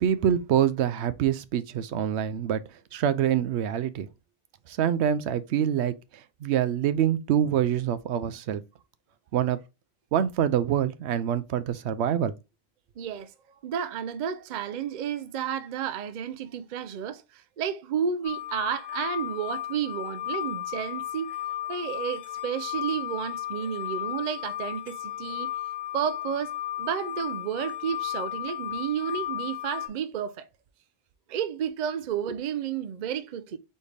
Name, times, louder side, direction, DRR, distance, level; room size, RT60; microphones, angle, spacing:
voice 1, 0.0-2.6 2.9-4.1 4.7-5.9 6.4-8.6 9.3-9.6 10.1-12.3, right 9 dB, 85° right, 0.8 m, -25 dB
voice 2, 13.0-13.3 13.6-21.3 21.7-25.5 25.9-26.5 26.8-30.5 31.3-33.6, right 8 dB, 55° right, 0.5 m, -31 dB
sound 1, 18.2-29.9, left 13 dB, 70° left, 0.9 m, -34 dB
4.4 x 3.4 x 3.3 m
omnidirectional pair, 1.1 m